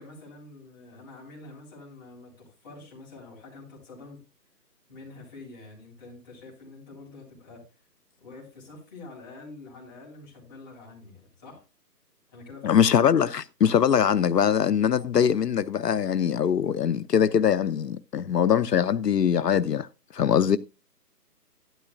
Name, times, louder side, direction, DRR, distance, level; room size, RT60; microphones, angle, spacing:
voice 1, 0.0-4.2 4.9-7.6 8.2-11.6 12.3-12.8, left 3 dB, 10° left, 4.0 m, -46 dB
voice 2, 12.6-19.9 20.1-20.6, left 8 dB, 75° left, 0.7 m, -22 dB
12.5 x 12.0 x 2.4 m
hypercardioid pair, 175°, 49 cm